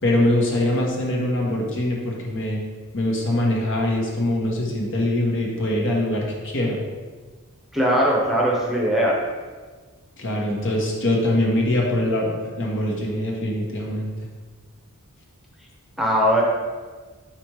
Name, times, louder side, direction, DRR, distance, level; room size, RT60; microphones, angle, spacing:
voice 1, 0.0-2.6 2.9-6.8 10.2-14.1, left 1 dB, 60° left, -2 dB, 1.3 m, -23 dB
voice 2, 7.7-9.1 16.0-16.4, equal, ahead, -3 dB, 0.9 m, -20 dB
5.1 x 4.4 x 4.7 m, 1.4 s
head